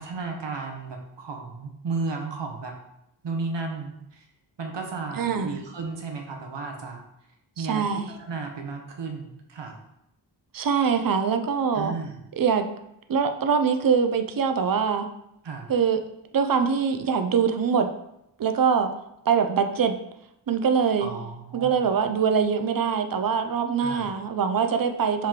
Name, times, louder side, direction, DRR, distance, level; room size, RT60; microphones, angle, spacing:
voice 1, 0.0-2.8 3.2-4.3 4.6-7.0 7.6-9.8 11.7-12.1 15.4-15.7 21.0-21.8 23.8-24.1, right 4 dB, 70° right, 2 dB, 0.9 m, -34 dB
voice 2, 5.2-5.6 7.6-8.1 10.5-11.9 12.4-12.7 13.1-15.1 15.7-16.0 16.3-17.9 18.4-18.9 19.3-19.9 20.5-21.1 21.5-25.3, right 6 dB, 50° right, 7 dB, 0.5 m, -23 dB
4.7 x 3.1 x 3.6 m, 0.83 s
wide cardioid pair, 95°, 44 cm